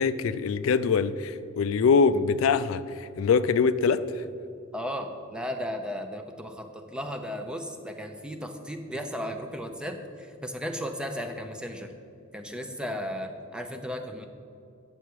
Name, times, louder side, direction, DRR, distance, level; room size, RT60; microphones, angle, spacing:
voice 1, 0.0-4.2, left 5 dB, 80° left, 13 dB, 0.3 m, -24 dB
voice 2, 4.7-11.9 12.3-14.3, equal, 5° right, 6 dB, 0.5 m, -35 dB
9.1 x 6.9 x 4.7 m, 2.5 s
head